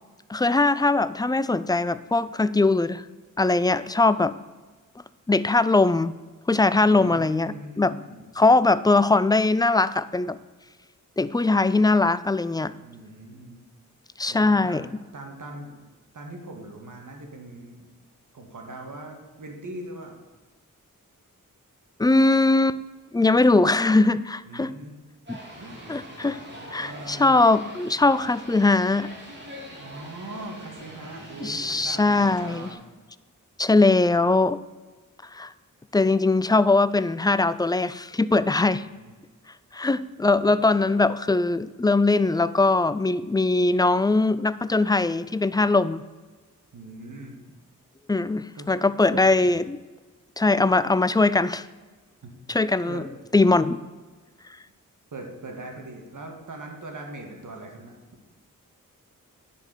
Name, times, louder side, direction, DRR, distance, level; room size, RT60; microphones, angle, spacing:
voice 1, 0.3-3.0 3.4-4.3 5.3-6.2 6.5-7.9 8.4-10.4 11.2-12.7 14.2-14.9 22.0-22.8 23.1-24.7 25.3-25.4 25.9-26.4 26.7-29.1 31.4-32.7 33.6-34.6 35.3-35.5 35.9-38.8 39.7-46.0 48.1-49.8 50.4-51.7 52.5-53.0 53.3-53.8, left 3 dB, 10° left, 15 dB, 0.3 m, -21 dB
voice 2, 6.8-8.3 12.8-13.6 14.3-14.9 15.1-15.8 16.1-17.9 18.3-20.2 24.5-24.9 25.6-26.1 26.8-27.4 29.8-32.8 38.7-39.1 40.4-40.8 46.7-47.4 48.6-48.8 49.1-49.5 52.2-52.3 52.9-53.1 55.1-57.9, right 2 dB, 65° right, 2 dB, 2.0 m, -41 dB
sound 1, 25.3-32.7, equal, 35° right, 2.7 m, -43 dB
9.9 x 5.2 x 6.7 m, 1.3 s
wide cardioid pair, 80°, 33 cm